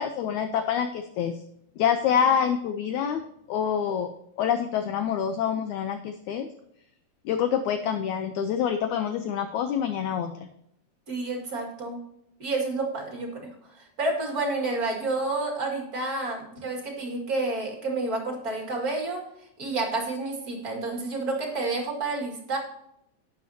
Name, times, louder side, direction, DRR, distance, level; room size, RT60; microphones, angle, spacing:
voice 1, 0.0-1.4 1.8-3.2 3.5-4.1 4.4-6.5 7.3-10.5, left 8 dB, 75° left, 8 dB, 1.8 m, -26 dB
voice 2, 11.1-12.0 12.4-13.5 13.8-19.2 19.6-22.6, right 2 dB, 30° right, 1 dB, 2.1 m, -29 dB
11.5 x 9.5 x 2.8 m, 0.77 s
omnidirectional pair, 3.9 m